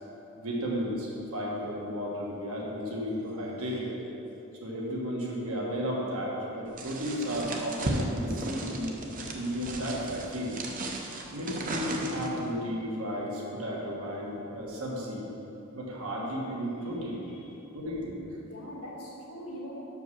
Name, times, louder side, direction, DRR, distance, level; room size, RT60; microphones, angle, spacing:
voice 1, 0.4-3.9 4.6-8.9 9.3-11.0 11.3-15.3 15.7-17.3 17.7-18.2, equal, 75° right, -4 dB, 1.6 m, -33 dB
sound 1, 6.8-12.5, right 2 dB, 40° right, 0.7 m, -35 dB
voice 2, 16.8-17.7 18.4-19.9, equal, 75° left, -4 dB, 1.7 m, -43 dB
6.2 x 5.3 x 6.4 m, 3.0 s
head